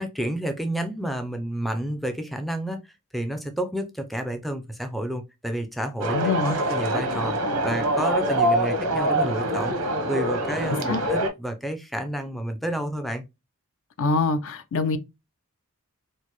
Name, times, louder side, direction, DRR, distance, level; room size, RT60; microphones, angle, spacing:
voice 1, 0.0-2.8 3.1-6.2 6.4-7.4 7.6-13.2, right 1 dB, ahead, 0.4 m, -30 dB
sound 1, 6.0-11.3, right 1 dB, 85° right, 0.8 m, -25 dB
voice 2, 6.1-6.6 10.9-11.0 14.0-15.0, left 3 dB, 60° left, 0.5 m, -24 dB
4.4 x 2.0 x 3.0 m
head